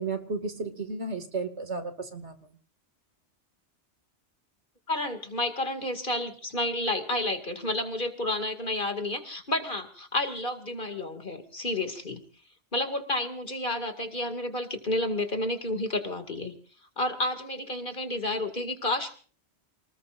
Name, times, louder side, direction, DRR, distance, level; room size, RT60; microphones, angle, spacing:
voice 1, 0.0-2.3, right 4 dB, 75° right, 7 dB, 2.5 m, -33 dB
voice 2, 4.9-12.2 12.7-16.5 17.0-19.1, left 1 dB, 45° left, 7 dB, 2.6 m, -30 dB
28.5 x 20.0 x 2.6 m, 0.41 s
omnidirectional pair, 1.2 m